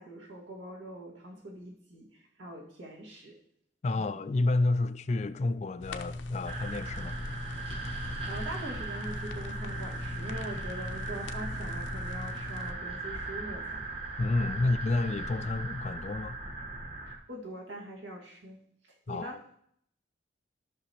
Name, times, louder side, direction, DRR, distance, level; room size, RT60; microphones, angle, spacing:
voice 1, 0.0-3.4 3.9-4.1 8.3-13.8 17.3-18.6 19.1-19.4, right 1 dB, 80° right, 1.9 m, -43 dB
voice 2, 3.8-7.2 14.2-16.4 19.1-19.4, left 2 dB, 35° left, 0.3 m, -30 dB
sound 1, 5.8-12.7, left 2 dB, 80° left, 0.6 m, -40 dB
sound 2, 6.4-17.1, right 2 dB, 30° right, 1.2 m, -38 dB
13.0 x 5.9 x 3.0 m
head